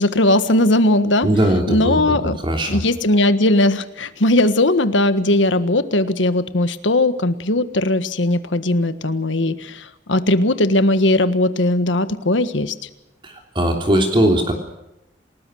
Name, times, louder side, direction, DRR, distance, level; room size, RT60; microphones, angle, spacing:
voice 1, 0.0-1.3 1.7-2.3 2.7-12.8, left 1 dB, 90° left, 12 dB, 1.5 m, -18 dB
voice 2, 1.2-2.8 13.2-14.5, right 1 dB, 25° right, 3 dB, 3.2 m, -19 dB
28.0 x 19.0 x 6.4 m, 0.88 s
head